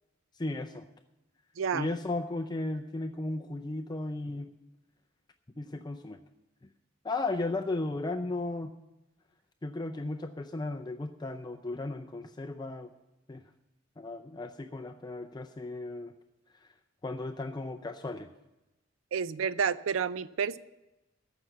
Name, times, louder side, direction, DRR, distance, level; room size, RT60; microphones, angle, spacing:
voice 1, 0.4-0.9 1.7-4.5 5.6-6.2 7.0-8.7 9.6-12.9 13.3-13.4 14.0-16.1 16.6-16.7 17.0-18.3, left 2 dB, 20° left, 5 dB, 0.5 m, -35 dB
voice 2, 1.6-1.9 19.1-20.6, right 6 dB, 90° right, 16 dB, 0.4 m, -30 dB
14.0 x 6.0 x 9.2 m, 0.98 s
head